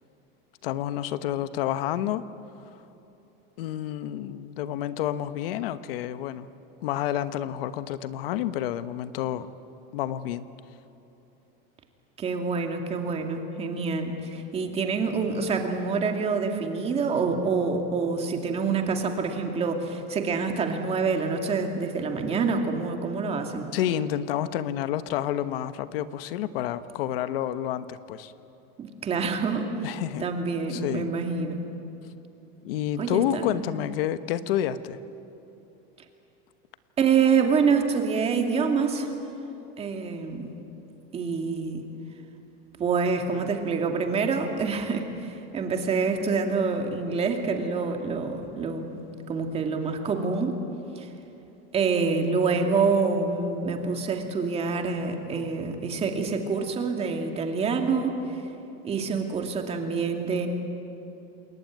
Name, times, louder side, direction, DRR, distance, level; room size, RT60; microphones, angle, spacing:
voice 1, 0.6-2.3 3.6-6.5 6.8-9.5 9.9-10.5 23.7-28.3 29.8-30.2 30.7-31.1 32.6-35.0, left 11 dB, 75° left, 12 dB, 1.2 m, -29 dB
voice 2, 12.2-23.7 28.8-29.7 30.2-31.6 33.0-33.5 37.0-39.1 39.8-40.5 41.1-41.8 42.8-49.0 49.3-50.6 51.0-51.1 51.7-58.4 58.8-60.5, right 5 dB, 20° right, 4 dB, 2.4 m, -26 dB
28.0 x 21.5 x 9.4 m, 3.0 s
supercardioid pair, 165°, 29 cm